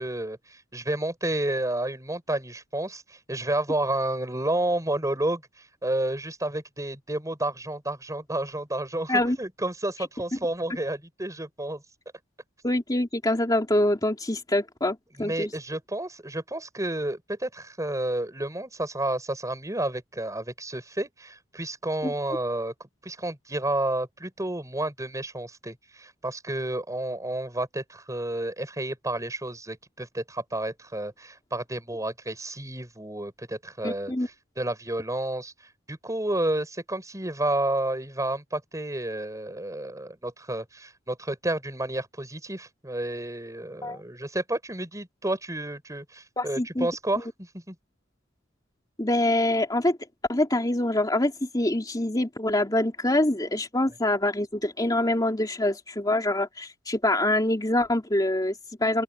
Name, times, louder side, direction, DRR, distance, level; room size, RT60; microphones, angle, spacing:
voice 1, 0.0-5.4 5.8-11.8 15.2-22.7 23.0-34.1 34.6-35.5 35.9-47.8, right 1 dB, 15° right, 6.0 m, -30 dB
voice 2, 12.6-15.5 22.0-22.1 33.8-34.3 43.8-44.0 46.4-46.9 47.2-47.3 49.0-50.0 50.3-59.0, left 1 dB, 20° left, 3.1 m, -25 dB
open air
head